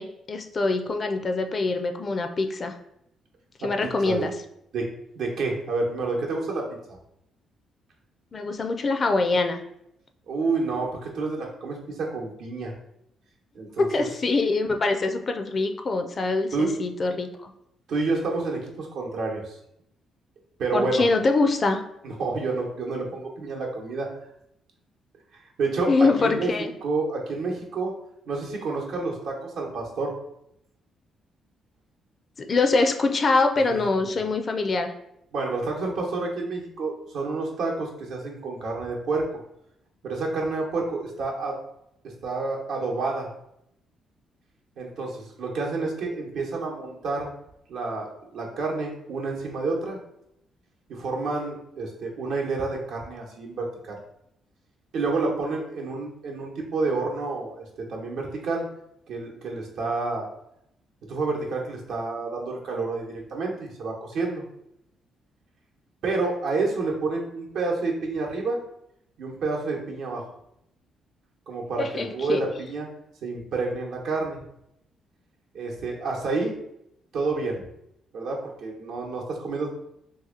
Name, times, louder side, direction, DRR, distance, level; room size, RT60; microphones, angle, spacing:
voice 1, 0.0-2.7 3.6-4.3 8.3-9.6 13.8-17.5 20.7-21.9 25.9-26.7 32.4-34.9 71.8-72.4, left 3 dB, 40° left, 7 dB, 0.4 m, -24 dB
voice 2, 3.8-4.3 4.7-4.9 5.1-7.0 10.3-12.7 13.5-14.1 16.5-16.7 17.9-19.6 20.6-21.0 22.0-24.1 25.3-26.5 26.8-27.9 28.3-30.1 33.7-33.8 35.3-39.3 40.0-41.6 42.2-43.3 44.8-47.3 47.7-50.0 50.9-54.0 54.9-58.7 59.1-60.3 61.1-64.4 66.0-68.6 69.2-70.3 71.5-72.9 73.2-74.4 75.5-76.5 77.1-77.7 78.1-79.7, right 3 dB, 75° right, -1 dB, 0.9 m, -29 dB
2.9 x 2.6 x 3.7 m, 0.78 s
cardioid pair, 90°, 0 cm